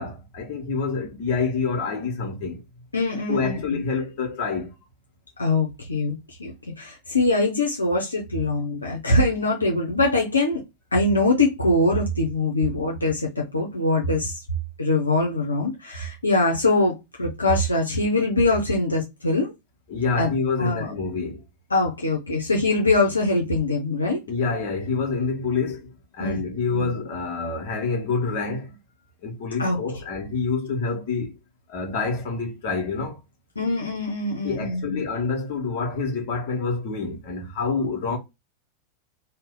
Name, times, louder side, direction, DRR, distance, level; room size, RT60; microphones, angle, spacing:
voice 1, 0.0-2.6 3.3-4.8 19.9-21.4 24.3-28.8 29.2-31.3 31.7-33.2 34.4-38.2, left 4 dB, 45° left, 1.2 m, -27 dB
voice 2, 2.9-3.8 5.4-10.6 10.9-14.4 14.8-19.5 20.2-20.3 20.6-20.9 21.7-24.2 26.2-26.4 26.7-26.9 29.6-29.8 33.6-35.0, left 2 dB, 80° left, 0.7 m, -23 dB
2.7 x 2.2 x 3.6 m
figure-of-eight pair, 90°, 0 cm